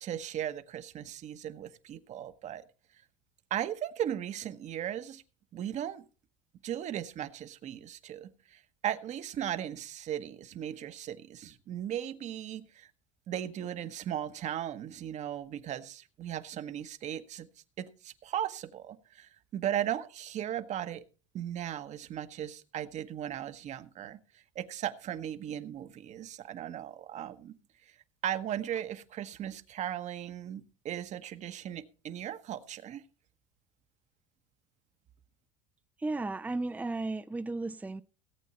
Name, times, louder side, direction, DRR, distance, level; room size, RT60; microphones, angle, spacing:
voice 1, 0.0-2.6 3.5-5.2 5.5-6.0 6.6-12.9 13.3-17.5 17.8-21.0 21.3-27.6 28.2-33.0, right 10 dB, 45° right, 1.2 m, -37 dB
voice 2, 36.0-38.0, right 2 dB, 10° right, 0.6 m, -34 dB
18.0 x 8.3 x 4.3 m
hypercardioid pair, 80°, 16 cm